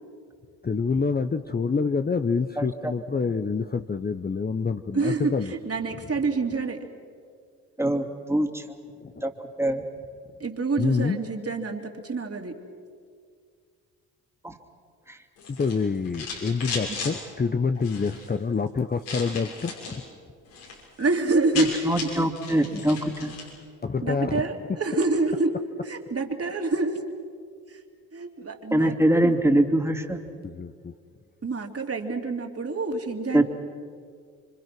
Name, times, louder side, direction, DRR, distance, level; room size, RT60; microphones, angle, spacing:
voice 1, 0.6-5.5 9.0-9.2 10.8-11.2 15.5-20.0 23.8-24.5 30.4-30.9, left 5 dB, 25° left, 9 dB, 0.9 m, -27 dB
voice 2, 2.6-2.9 7.8-8.8 9.2-9.3 9.6-9.8 14.4-14.6 15.1-15.2 21.5-23.4 28.7-30.2 33.3-33.4, right 1 dB, 5° right, 4 dB, 2.7 m, -23 dB
voice 3, 4.9-6.9 10.4-12.5 21.0-22.2 24.0-25.5 25.8-26.9 27.7-27.8 28.1-29.3 31.4-33.4, right 3 dB, 35° right, 3 dB, 3.1 m, -27 dB
sound 1, 15.4-17.1 17.7-18.3 19.0-20.0 20.4-20.8 21.0-21.1 21.3-23.5, left 4 dB, 85° left, 6.1 m, -35 dB
26.5 x 25.0 x 6.2 m, 2.1 s
hypercardioid pair, 55°, 40 cm